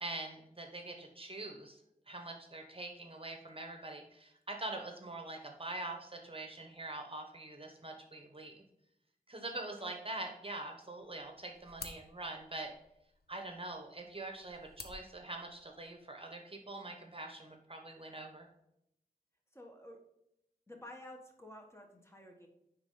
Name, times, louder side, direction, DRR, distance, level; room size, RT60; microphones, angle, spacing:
voice 1, 0.0-1.8 2.1-8.6 9.3-12.7 13.3-18.5, right 2 dB, 35° right, 3 dB, 1.2 m, -44 dB
sound 1, 11.0-16.0, left 3 dB, 85° left, 0.9 m, -54 dB
voice 2, 19.5-20.0 20.7-22.5, left 1 dB, 15° left, 2 dB, 1.5 m, -51 dB
9.7 x 4.1 x 3.9 m, 0.80 s
wide cardioid pair, 55°, 16 cm